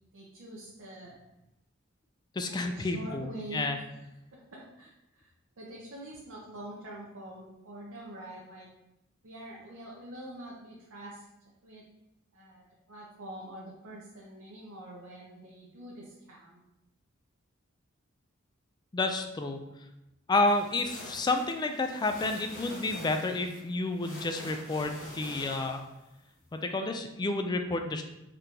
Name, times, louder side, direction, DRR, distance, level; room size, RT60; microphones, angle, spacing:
voice 1, 0.1-1.2 2.5-3.7 4.3-5.3 5.6-8.7 9.2-11.3 11.6-11.9 12.3-16.6, right 1 dB, 70° right, -5 dB, 0.8 m, -45 dB
voice 2, 2.4-3.8 18.9-19.6 20.3-25.8 26.5-28.0, left 2 dB, 20° left, 6 dB, 0.3 m, -30 dB
sound 1, 20.4-26.1, left 1 dB, 65° left, 1.4 m, -46 dB
4.1 x 3.2 x 2.8 m, 0.91 s
head